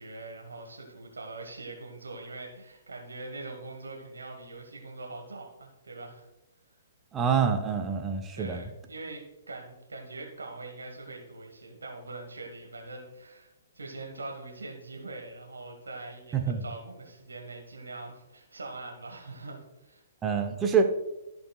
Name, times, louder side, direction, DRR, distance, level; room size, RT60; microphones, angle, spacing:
voice 1, 0.0-6.3 8.3-20.0, right 2 dB, 75° right, 2 dB, 1.4 m, -43 dB
voice 2, 7.1-8.6 16.3-16.7 20.2-20.9, right 6 dB, 15° right, 5 dB, 0.9 m, -26 dB
14.5 x 5.3 x 2.3 m, 0.98 s
figure-of-eight pair, 120°, 0 cm